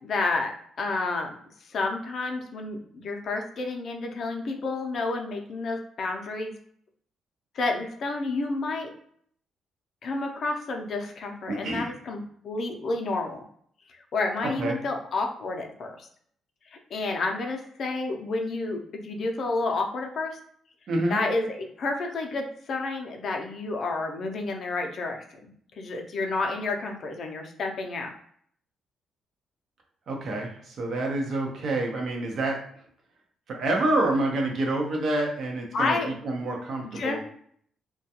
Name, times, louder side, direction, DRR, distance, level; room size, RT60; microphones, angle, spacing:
voice 1, 0.0-6.5 7.5-8.9 10.0-13.4 13.9-16.1 16.7-20.4 21.1-28.1 35.7-36.1 36.9-37.2, left 3 dB, 60° left, 2 dB, 0.5 m, -30 dB
voice 2, 11.5-11.9 14.4-14.8 20.9-21.2 30.1-32.6 33.5-36.0 36.2-37.2, right 2 dB, 60° right, 0 dB, 0.7 m, -27 dB
2.3 x 2.2 x 2.8 m, 0.62 s
cardioid pair, 90°, 0 cm